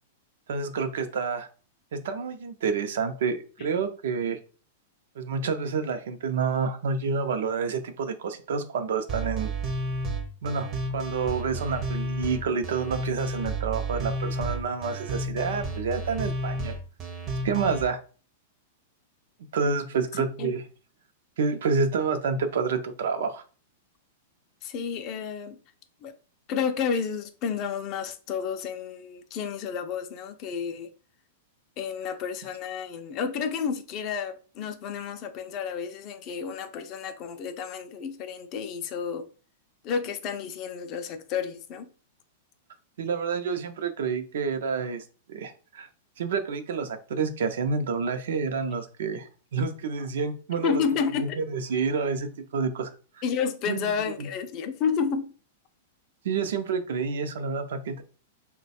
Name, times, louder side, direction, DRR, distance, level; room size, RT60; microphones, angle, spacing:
voice 1, 0.5-1.5 1.9-4.4 5.2-9.5 10.4-10.7 10.9-16.8 17.4-18.0 19.5-20.6 21.4-23.4 43.0-45.9 46.2-50.8 51.2-52.9 53.7-53.9 54.2-54.3 56.2-58.0, right 5 dB, 70° right, 0.6 m, -28 dB
sound 1, 9.1-17.8, right 1 dB, 25° right, 0.6 m, -31 dB
voice 2, 20.1-20.6 24.6-25.6 26.0-26.1 26.5-30.9 31.8-39.3 39.8-41.9 50.6-51.4 53.2-55.3, left 6 dB, 30° left, 0.4 m, -31 dB
3.1 x 2.2 x 4.1 m
supercardioid pair, 165°, 0 cm